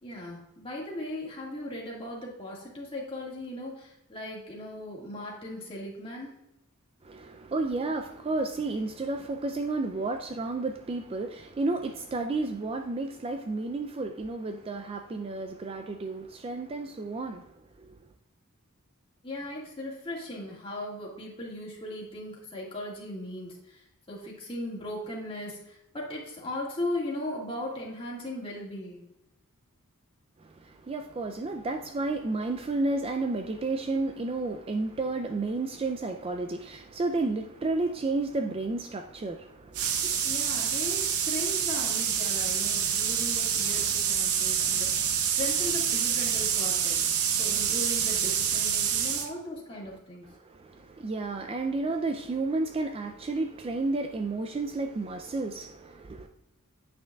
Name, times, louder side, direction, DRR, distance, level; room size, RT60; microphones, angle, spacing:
voice 1, 0.0-6.3 19.2-29.1 40.2-47.1 47.4-50.3, left 1 dB, 25° left, 1.8 m, -38 dB
voice 2, 7.0-17.5 17.8-18.0 30.4-40.2 50.3-56.3, right 3 dB, 25° right, 0.3 m, -32 dB
sound 1, 39.7-49.3, right 8 dB, 85° right, 0.7 m, -27 dB
8.9 x 6.0 x 2.3 m
head